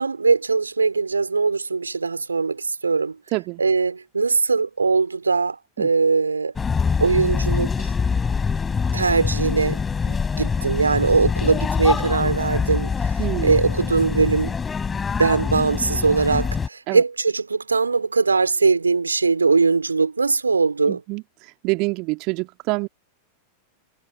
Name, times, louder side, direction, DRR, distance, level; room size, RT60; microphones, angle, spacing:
voice 1, 0.0-3.2 3.6-6.5 7.0-7.9 8.9-9.8 10.1-13.1 13.4-14.5 15.2-21.0, right 4 dB, 75° right, 3.7 m, -21 dB
voice 2, 3.3-3.6 5.8-5.9 13.2-13.6 16.9-17.0 20.9-22.9, right 27 dB, 40° right, 1.8 m, -26 dB
sound 1, 6.6-16.7, left 5 dB, 15° left, 3.8 m, -24 dB
figure-of-eight pair, 90°, 0 cm